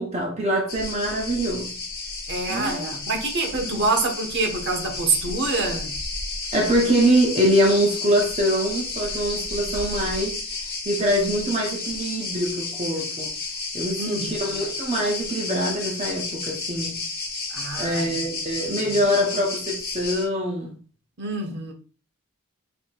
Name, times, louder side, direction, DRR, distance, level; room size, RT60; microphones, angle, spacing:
voice 1, 0.0-1.7 2.5-2.9 6.5-10.4 10.9-13.3 13.7-17.0 17.8-20.7, equal, 30° right, 0.8 m, -24 dB
sound 1, 0.7-20.3, left 3 dB, 45° left, 1.5 m, -32 dB
voice 2, 2.3-5.9 14.0-14.6 17.5-18.2 18.7-18.9 21.2-21.7, right 3 dB, 55° right, 1.1 m, -26 dB
4.8 x 4.3 x 2.3 m
head